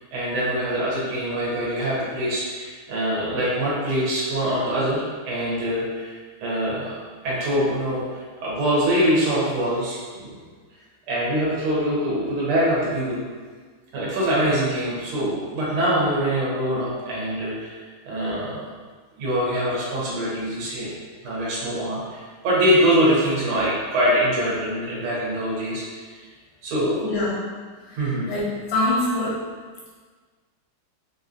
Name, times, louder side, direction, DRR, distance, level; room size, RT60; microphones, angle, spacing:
voice 1, 0.0-7.0 7.2-10.4 11.1-13.2 13.9-17.8 18.1-18.7 19.2-20.9 21.2-25.8 26.6-27.2 27.9-28.3, equal, 80° right, -7 dB, 1.9 m, -24 dB
voice 2, 27.0-27.4 27.8-28.0 28.3-29.4, left 2 dB, 90° left, -7 dB, 1.9 m, -24 dB
4.7 x 2.6 x 2.4 m, 1.5 s
omnidirectional pair, 2.4 m